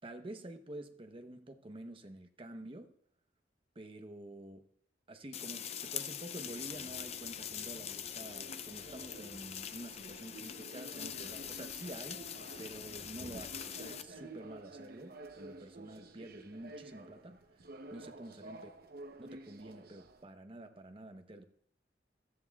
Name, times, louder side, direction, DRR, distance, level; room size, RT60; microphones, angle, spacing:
voice 1, 0.0-2.9 3.7-4.7 5.1-12.2 12.6-17.4 17.9-18.7 19.2-21.4, right 1 dB, 30° right, 0.9 m, -48 dB
sound 1, 5.3-14.0, left 9 dB, 35° left, 0.4 m, -43 dB
sound 2, 6.1-20.2, right 2 dB, 60° right, 0.8 m, -52 dB
17.0 x 13.5 x 2.3 m
head